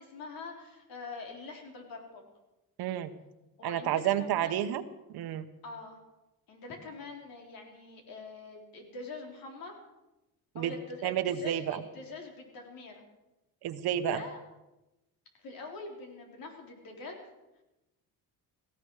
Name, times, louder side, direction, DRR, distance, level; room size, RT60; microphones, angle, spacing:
voice 1, 0.0-2.2 3.6-4.6 5.6-6.0 6.5-9.7 10.5-13.0 14.0-14.4 15.4-17.1, left 3 dB, 65° left, 1 dB, 4.3 m, -44 dB
voice 2, 2.8-3.1 3.6-4.8 5.1-5.4 10.5-10.7 11.0-11.8 13.6-14.2, right 11 dB, 90° right, 10 dB, 1.2 m, -30 dB
18.0 x 16.0 x 4.9 m, 0.99 s
cardioid pair, 155°, 37 cm